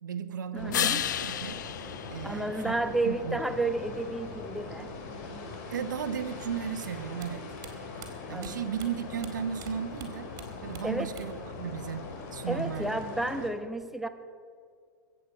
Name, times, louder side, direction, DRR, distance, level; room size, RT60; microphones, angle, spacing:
voice 1, 0.0-1.6 2.1-2.7 3.0-3.4 5.7-7.4 8.3-10.3 10.6-13.0, right 8 dB, 75° right, 11 dB, 1.0 m, -35 dB
voice 2, 0.5-1.1 2.2-5.4 8.3-8.7 10.8-11.1 12.5-14.1, right 2 dB, 5° right, 8 dB, 0.9 m, -32 dB
sound 1, 0.6-13.5, left 3 dB, 50° left, 2.4 m, -41 dB
sound 2, 0.7-3.3 9.0-13.0, left 11 dB, 70° left, 0.4 m, -36 dB
sound 3, 6.8-9.7 10.0-11.5 11.7-12.5, right 10 dB, 35° right, 2.5 m, -48 dB
22.0 x 8.4 x 5.1 m, 2.2 s
hypercardioid pair, 100°, 10 cm